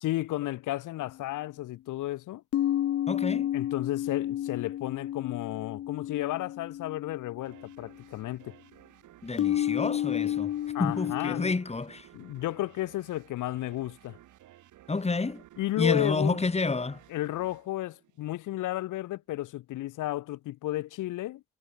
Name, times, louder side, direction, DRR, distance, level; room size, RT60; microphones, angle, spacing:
voice 1, 0.0-2.4 3.5-8.5 10.7-11.5 12.1-14.2 15.6-16.4 17.1-21.4, left 16 dB, 85° left, 1.8 m, -33 dB
sound 1, 1.0-1.1 2.5-7.9 9.4-11.5, left 12 dB, 50° left, 0.6 m, -31 dB
voice 2, 3.1-3.5 9.2-10.5 10.8-12.1 14.9-15.4 15.8-17.0, left 3 dB, 20° left, 2.7 m, -29 dB
sound 2, 7.4-18.7, right 13 dB, 80° right, 4.3 m, -56 dB
cardioid pair, 90°, 30 cm